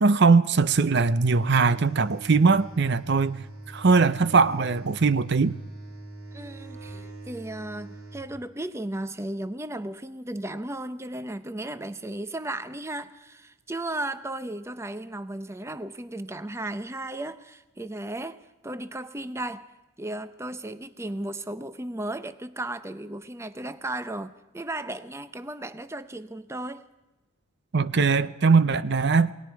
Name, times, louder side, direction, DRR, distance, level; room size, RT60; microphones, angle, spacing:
voice 1, 0.0-5.6 27.7-29.3, right 4 dB, 50° right, 0.6 m, -21 dB
sound 1, 0.7-8.3, right 2 dB, 80° right, 6.4 m, -43 dB
voice 2, 6.3-19.7 20.0-26.8, right 1 dB, 15° right, 0.6 m, -35 dB
28.5 x 19.5 x 4.7 m
head